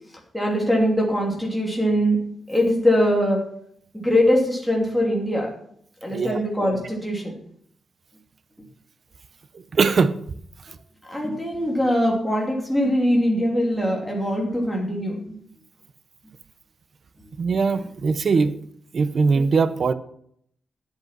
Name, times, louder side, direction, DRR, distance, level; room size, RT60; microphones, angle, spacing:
voice 1, 0.3-2.2 2.5-3.4 3.9-5.5 6.0-7.4 11.1-15.4, equal, 5° left, -1 dB, 2.8 m, -22 dB
voice 2, 9.7-10.2 17.4-18.5 18.9-19.9, right 4 dB, 40° right, 13 dB, 0.7 m, -20 dB
10.5 x 8.0 x 6.0 m, 0.67 s
wide cardioid pair, 175°, 0 cm